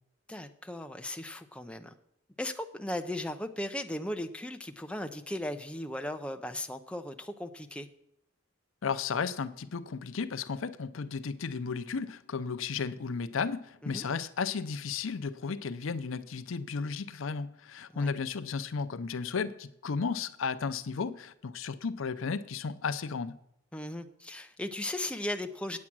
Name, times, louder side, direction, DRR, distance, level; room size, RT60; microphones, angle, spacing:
voice 1, 0.3-1.9 2.4-7.9 13.8-14.0 17.9-18.1 23.7-25.8, left 1 dB, 5° left, 0.5 m, -37 dB
voice 2, 8.8-23.4, left 5 dB, 75° left, 0.6 m, -34 dB
8.7 x 8.4 x 6.1 m
head